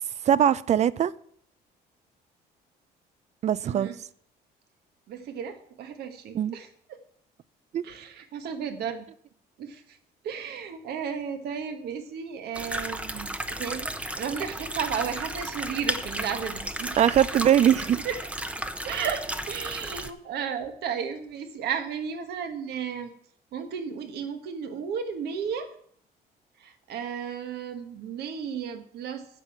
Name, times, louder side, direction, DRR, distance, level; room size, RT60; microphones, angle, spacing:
voice 1, 0.2-1.1 3.4-3.9 6.3-6.6 7.7-7.8 17.0-18.0, right 10 dB, 40° right, 0.4 m, -21 dB
voice 2, 3.6-4.0 5.1-6.7 7.8-9.0 9.6-10.0 10.2-17.0 18.0-18.2 18.8-23.1 23.5-25.7 26.6-29.3, right 7 dB, 75° right, 1.5 m, -34 dB
sound 1, 12.5-20.1, right 1 dB, 5° right, 0.7 m, -34 dB
9.8 x 7.4 x 6.0 m
cardioid pair, 110°, 17 cm